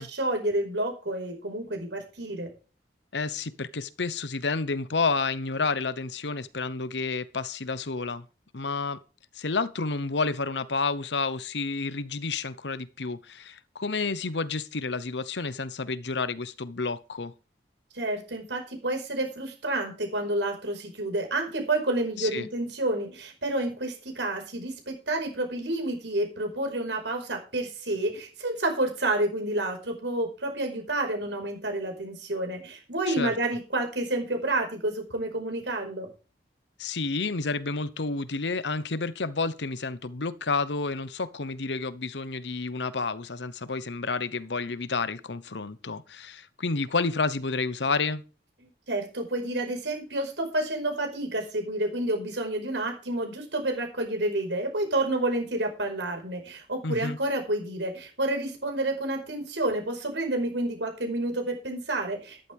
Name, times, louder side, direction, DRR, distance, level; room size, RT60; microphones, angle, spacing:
voice 1, 0.0-2.5 17.9-36.1 48.9-62.5, right 1 dB, 85° right, 5.2 m, -29 dB
voice 2, 3.1-8.2 8.5-9.0 9.3-17.3 22.2-22.5 33.1-33.3 36.8-48.2 56.8-57.2, left 4 dB, 80° left, 0.9 m, -30 dB
13.0 x 12.0 x 3.6 m
head